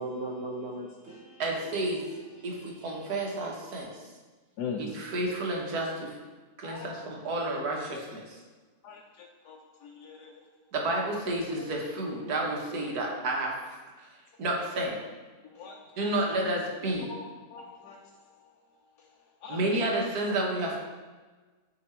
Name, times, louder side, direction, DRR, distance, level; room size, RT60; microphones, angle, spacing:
voice 1, 0.0-1.4 2.0-3.3 3.7-3.8, right 2 dB, 55° right, -3 dB, 0.7 m, -40 dB
voice 2, 1.4-2.0 2.4-3.9 4.8-6.2 6.6-8.4 10.7-14.1 14.4-15.0 16.0-17.1 19.5-20.8, right 1 dB, 75° right, -1 dB, 1.5 m, -31 dB
voice 3, 4.6-4.9 6.6-7.0 8.8-10.5 11.6-11.7 15.4-16.4 17.0-18.6 19.0-19.8, left 5 dB, 85° left, 0 dB, 1.1 m, -42 dB
7.8 x 2.9 x 4.3 m, 1.3 s
omnidirectional pair, 1.7 m